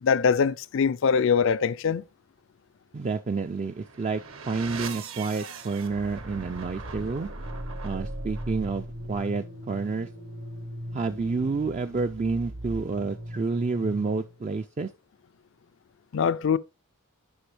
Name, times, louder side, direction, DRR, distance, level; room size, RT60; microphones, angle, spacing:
voice 1, 0.0-2.0 16.1-16.6, left 6 dB, 60° left, 0.4 m, -23 dB
voice 2, 2.9-7.3 7.8-10.1 10.9-14.9, right 4 dB, 30° right, 0.3 m, -29 dB
sound 1, 3.6-14.4, right 1 dB, 65° right, 1.1 m, -38 dB
10.0 x 5.4 x 3.3 m
head